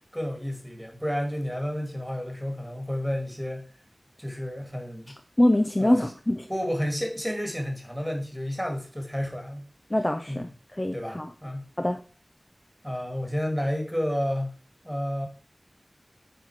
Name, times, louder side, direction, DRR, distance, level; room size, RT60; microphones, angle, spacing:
voice 1, 0.1-3.7 4.2-5.2 5.8-6.0 6.5-9.7 10.3-10.5 10.9-11.7 12.8-14.5 14.8-15.3, equal, ahead, 3 dB, 2.1 m, -31 dB
voice 2, 5.4-6.5 9.9-10.5 10.8-11.3 11.8-12.0, left 1 dB, 25° left, 5 dB, 0.6 m, -24 dB
9.2 x 4.2 x 4.7 m, 0.38 s
wide cardioid pair, 65°, 0 cm